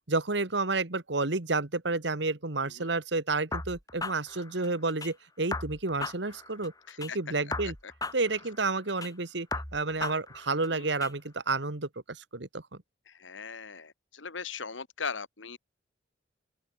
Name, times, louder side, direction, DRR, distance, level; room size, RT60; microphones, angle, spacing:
voice 1, 0.1-6.7 7.0-7.7 8.1-9.5 9.7-12.6, right 3 dB, 65° right, 1.6 m, -30 dB
sound 1, 3.5-5.1 5.5-7.1 7.5-9.1 9.5-11.1, left 3 dB, 20° left, 5.9 m, -37 dB
voice 2, 6.9-7.2 7.8-7.9 10.7-10.9 13.1-15.6, left 5 dB, 85° left, 1.9 m, -39 dB
open air
head